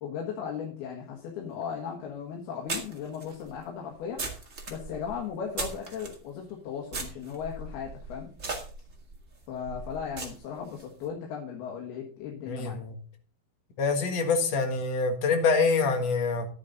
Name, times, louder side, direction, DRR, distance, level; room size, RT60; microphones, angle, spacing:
voice 1, 0.0-4.2 4.7-8.3 9.5-12.8, left 7 dB, 85° left, -1 dB, 3.6 m, -37 dB
sound 1, 1.6-1.7 2.7-6.2 6.9-10.8, right 3 dB, 30° right, 1.4 m, -38 dB
voice 2, 12.5-12.9 13.8-16.5, left 4 dB, 50° left, 4 dB, 2.4 m, -25 dB
11.5 x 9.6 x 3.9 m, 0.42 s
omnidirectional pair, 4.4 m